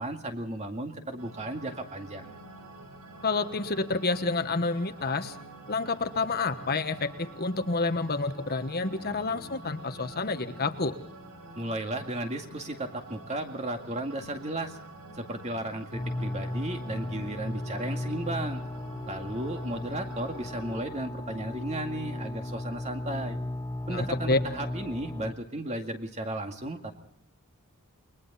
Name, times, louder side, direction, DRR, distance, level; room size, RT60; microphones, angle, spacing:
voice 1, 0.0-2.3 11.6-14.8 15.2-18.6 19.1-23.4 23.9-26.9, right 1 dB, 30° right, 4 dB, 2.1 m, -34 dB
sound 1, 1.2-20.8, right 2 dB, 80° right, 4.2 m, -47 dB
voice 2, 3.2-5.3 5.7-10.9 23.9-24.4, left 3 dB, 45° left, 8 dB, 1.3 m, -29 dB
sound 2, 15.9-25.3, left 1 dB, 10° left, 1.0 m, -36 dB
29.0 x 22.0 x 4.2 m, 0.70 s
head